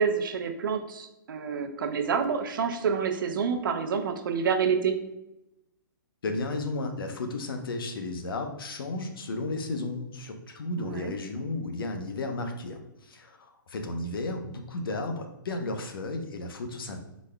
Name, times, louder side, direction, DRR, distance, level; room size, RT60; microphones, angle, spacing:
voice 1, 0.0-4.9 10.8-11.1, right 6 dB, 65° right, 7 dB, 0.6 m, -28 dB
voice 2, 6.2-17.0, left 2 dB, 75° left, 5 dB, 0.8 m, -33 dB
4.8 x 4.1 x 2.2 m, 0.92 s
hypercardioid pair, 160°, 12 cm